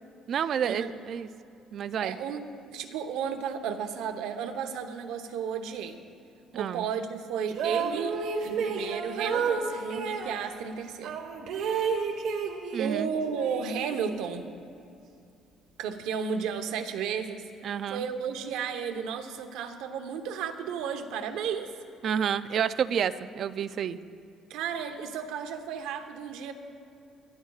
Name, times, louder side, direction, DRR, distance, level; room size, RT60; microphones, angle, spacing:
voice 1, 0.3-1.3 1.7-2.2 6.5-6.9 12.7-13.1 17.6-18.0 22.0-24.0, right 8 dB, 40° right, 13 dB, 0.3 m, -29 dB
voice 2, 2.0-6.0 6.5-8.2 8.4-11.2 12.8-14.5 15.8-17.4 17.9-21.7 24.5-26.5, right 7 dB, 85° right, 6 dB, 0.9 m, -33 dB
sound 1, 7.5-10.4 11.0-13.0 13.3-14.4, right 5 dB, 65° right, 1.3 m, -31 dB
24.5 x 13.0 x 2.4 m, 2.5 s
cardioid pair, 175°, 0 cm